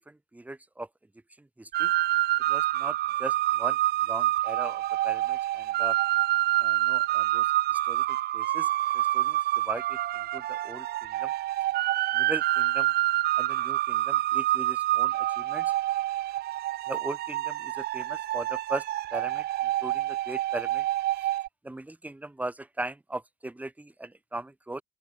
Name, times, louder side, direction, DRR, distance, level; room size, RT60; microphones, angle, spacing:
voice 1, 0.1-0.9 1.4-1.9 2.5-3.8 4.1-6.0 6.6-7.5 7.7-8.7 8.9-10.0 10.3-11.3 12.1-12.9 13.3-15.7 16.9-18.8 19.1-19.4 19.8-20.9 21.6-24.8, right 2 dB, 10° right, 2.5 m, -39 dB
sound 1, 1.7-21.5, right 14 dB, 70° right, 1.7 m, -27 dB
open air
cardioid pair, 110°, 17 cm